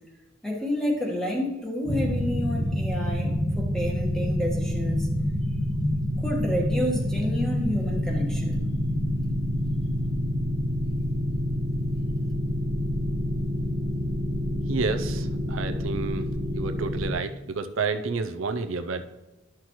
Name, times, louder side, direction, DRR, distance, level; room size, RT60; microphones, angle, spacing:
voice 1, 0.4-5.1 6.2-8.6, left 1 dB, 5° left, -2 dB, 1.4 m, -30 dB
sound 1, 1.9-17.1, equal, 30° right, 1.2 m, -27 dB
voice 2, 14.7-16.3 16.5-19.0, right 4 dB, 85° right, 8 dB, 0.5 m, -30 dB
11.5 x 5.9 x 3.1 m, 1.1 s
head